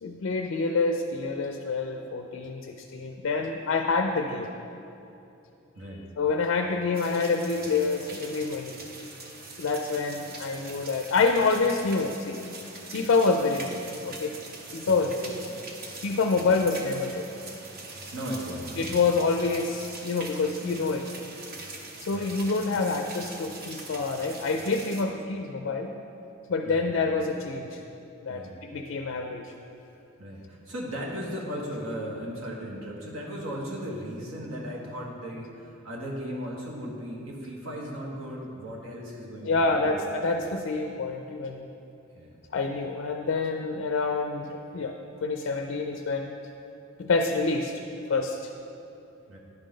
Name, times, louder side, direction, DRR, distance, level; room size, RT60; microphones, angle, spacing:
voice 1, 0.0-4.5 6.2-8.7 9.6-12.4 12.9-14.3 14.7-15.4 16.0-17.2 18.8-21.1 22.0-25.9 26.5-27.8 28.2-29.5 39.4-41.7 42.5-44.9 45.2-46.3 47.0-47.8 48.1-48.5, left 4 dB, 60° left, 4 dB, 0.4 m, -27 dB
sound 1, 6.9-25.0, right 2 dB, 45° right, 0.7 m, -42 dB
voice 2, 18.1-18.8 22.1-22.4 26.6-26.9 28.3-28.6 30.2-40.4 42.1-42.4 49.3-49.4, equal, 70° right, -3 dB, 1.4 m, -37 dB
10.5 x 3.8 x 5.1 m, 2.8 s
head